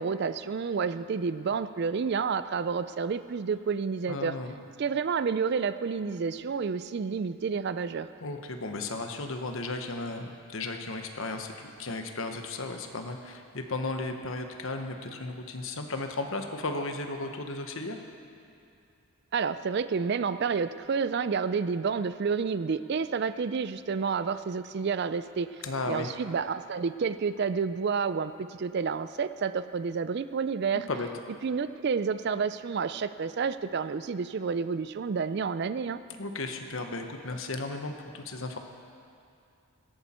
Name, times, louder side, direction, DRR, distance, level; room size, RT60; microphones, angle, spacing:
voice 1, 0.0-4.4 4.8-8.1 19.3-30.9 31.4-36.0, right 5 dB, 50° right, 13 dB, 0.4 m, -30 dB
voice 2, 4.1-4.6 8.2-18.0 25.6-26.1 30.7-31.1 36.2-38.6, left 2 dB, 65° left, 5 dB, 1.1 m, -35 dB
17.0 x 12.5 x 4.3 m, 2.6 s
head